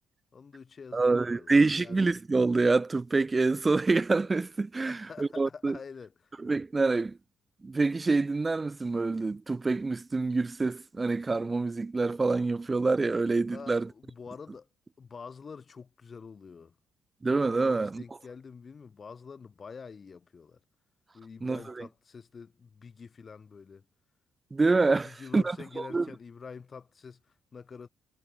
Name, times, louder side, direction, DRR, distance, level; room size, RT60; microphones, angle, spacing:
voice 1, 0.3-2.0 4.8-6.3 13.5-14.7 15.0-16.8 17.6-20.6 21.1-23.8 25.0-27.9, left 5 dB, 40° left, 5.0 m, -46 dB
voice 2, 0.9-5.8 6.4-7.2 7.6-13.9 17.2-18.0 21.4-21.9 24.5-25.6 25.9-26.1, right 3 dB, 25° right, 0.3 m, -26 dB
cardioid pair, 90°, 0 cm